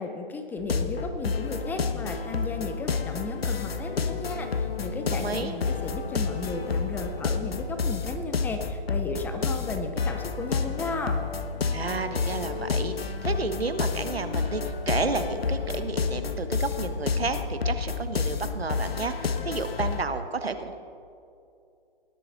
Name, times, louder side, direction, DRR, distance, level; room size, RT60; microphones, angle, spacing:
voice 1, 0.0-11.2, left 3 dB, 5° left, 6 dB, 0.5 m, -34 dB
sound 1, 0.6-20.0, left 5 dB, 80° left, 1.1 m, -30 dB
voice 2, 5.1-5.5 11.7-20.8, right 3 dB, 90° right, 9 dB, 1.3 m, -31 dB
19.0 x 11.0 x 4.0 m, 2.5 s
figure-of-eight pair, 130°, 30 cm